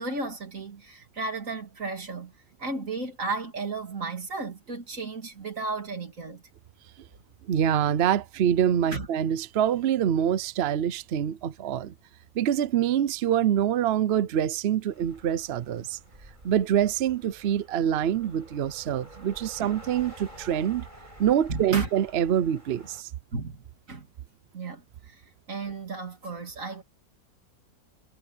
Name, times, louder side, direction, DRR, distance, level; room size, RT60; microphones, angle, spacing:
voice 1, 0.0-2.3 2.6-6.4 8.9-9.1 19.6-19.7 21.5-21.9 23.3-24.1 24.5-25.2 25.5-26.8, right 3 dB, 45° right, 3.1 m, -34 dB
voice 2, 7.5-11.9 12.3-16.0 16.4-20.8 21.2-23.1, right 10 dB, 75° right, 0.5 m, -25 dB
sound 1, 14.9-23.0, right 1 dB, 25° right, 8.1 m, -49 dB
omnidirectional pair, 2.0 m